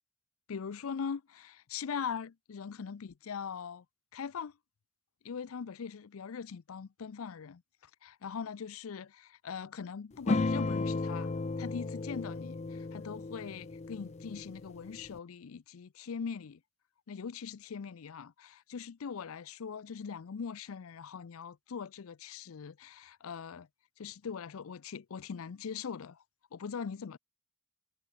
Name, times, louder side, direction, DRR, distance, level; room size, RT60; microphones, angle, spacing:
voice 1, 0.5-3.9 4.1-4.6 5.2-16.6 17.1-23.7 24.0-26.2 26.5-27.2, left 6 dB, 85° left, 0.5 m, -41 dB
sound 1, 10.3-15.2, left 3 dB, 35° left, 0.5 m, -34 dB
head